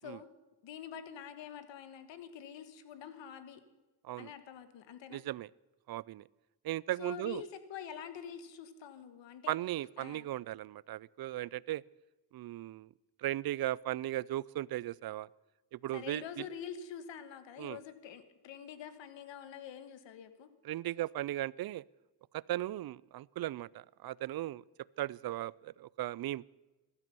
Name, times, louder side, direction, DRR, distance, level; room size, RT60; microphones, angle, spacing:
voice 1, 0.6-3.6 4.2-5.2 7.0-9.6 10.0-10.3 15.9-20.5, left 8 dB, 85° left, 11 dB, 1.6 m, -46 dB
voice 2, 5.1-5.5 5.9-6.3 6.6-7.4 9.5-11.8 12.3-12.9 13.2-15.3 15.7-16.5 17.6-17.8 20.6-21.8 22.3-24.6 25.0-26.4, right 14 dB, 55° right, 24 dB, 0.5 m, -37 dB
16.0 x 12.5 x 6.9 m, 1.1 s
cardioid pair, 110°, 43 cm